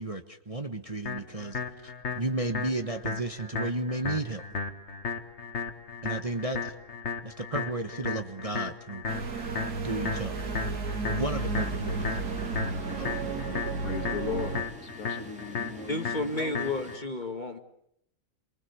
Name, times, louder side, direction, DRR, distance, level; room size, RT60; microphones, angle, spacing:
voice 1, 0.0-4.4 6.0-6.7 7.2-9.0 9.8-10.4 11.1-12.0 12.9-13.1, right 2 dB, 25° right, 6 dB, 1.2 m, -33 dB
sound 1, 1.1-17.0, left 5 dB, 45° left, 1.9 m, -35 dB
sound 2, 9.1-14.6, right 4 dB, 70° right, 2.6 m, -33 dB
sound 3, 11.2-17.0, equal, 5° right, 2.2 m, -48 dB
voice 2, 13.8-16.9, left 6 dB, 60° left, 6 dB, 2.3 m, -38 dB
voice 3, 15.9-17.6, left 2 dB, 30° left, 5 dB, 1.8 m, -32 dB
28.0 x 23.5 x 7.1 m, 0.72 s
omnidirectional pair, 1.7 m